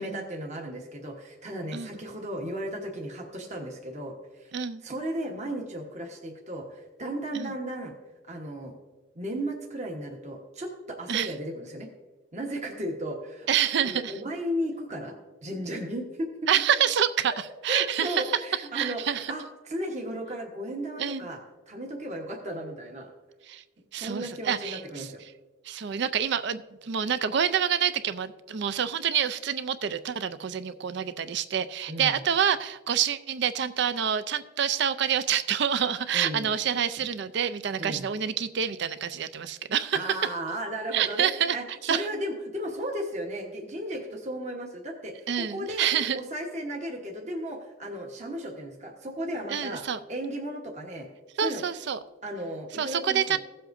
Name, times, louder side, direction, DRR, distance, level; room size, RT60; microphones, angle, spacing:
voice 1, 0.0-4.5 4.8-7.9 8.2-8.7 9.1-11.9 12.3-13.5 13.8-15.1 15.4-16.5 17.7-21.4 21.7-23.1 24.0-25.2 31.9-32.2 36.1-36.5 37.8-38.1 39.9-45.9 46.1-49.8 50.1-51.1 51.4-51.6 52.2-53.4, right 1 dB, 35° right, 1 dB, 1.1 m, -35 dB
voice 2, 13.5-14.1 16.5-17.3 17.6-18.2 18.7-19.3 21.0-21.3 23.5-23.6 23.9-25.1 25.7-40.0 40.9-41.6 41.8-42.1 45.3-46.2 49.5-50.0 51.4-52.0 52.8-53.4, right 8 dB, 55° right, 13 dB, 0.4 m, -27 dB
16.0 x 7.7 x 2.6 m, 1.2 s
head